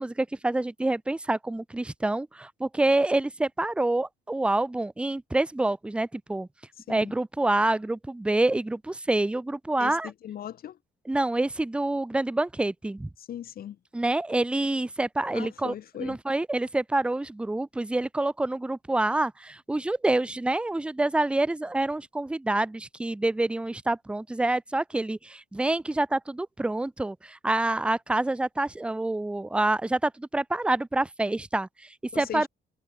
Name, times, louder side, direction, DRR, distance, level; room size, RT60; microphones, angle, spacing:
voice 1, 0.0-6.5 6.9-10.1 11.1-13.1 13.9-32.5, right 2 dB, 5° right, 0.3 m, -27 dB
voice 2, 9.8-10.8 13.2-13.8 15.3-16.2 32.1-32.5, left 10 dB, 50° left, 0.5 m, -39 dB
cardioid pair, 90°, 20 cm